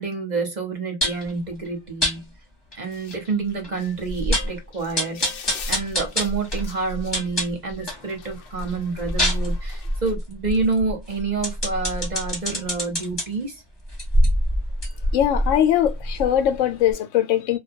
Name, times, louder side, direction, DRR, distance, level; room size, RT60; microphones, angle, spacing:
voice 1, 0.0-2.3 2.7-5.4 5.7-13.6, right 4 dB, 40° right, 0.9 m, -28 dB
sound 1, 1.0-1.3 2.0-2.2 2.7-2.8 3.1-3.2 3.6-3.7 4.1-4.6 5.0-8.1 8.5-13.2 13.9-16.6 16.9-17.0, equal, 20° left, 0.9 m, -25 dB
sound 2, 2.9-10.1, left 7 dB, 60° left, 0.7 m, -44 dB
voice 2, 15.1-17.6, left 10 dB, 85° left, 0.9 m, -21 dB
2.2 x 2.2 x 2.6 m
omnidirectional pair, 1.3 m